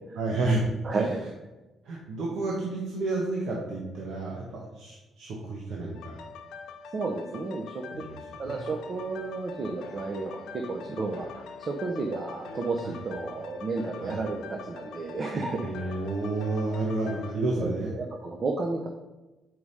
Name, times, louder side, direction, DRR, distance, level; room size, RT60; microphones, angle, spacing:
voice 1, 0.2-0.6 1.8-6.2 7.9-8.2 8.5-8.6 12.8-13.0 14.0-14.1 15.6-17.9, right 2 dB, 75° right, -3 dB, 1.2 m, -30 dB
voice 2, 0.8-1.2 6.9-7.8 8.4-16.0 17.6-18.9, right 3 dB, 45° right, 2 dB, 0.8 m, -32 dB
sound 1, 5.9-17.3, left 5 dB, 85° left, 0.7 m, -44 dB
4.8 x 4.7 x 5.6 m, 1.1 s
cardioid pair, 90°, 0 cm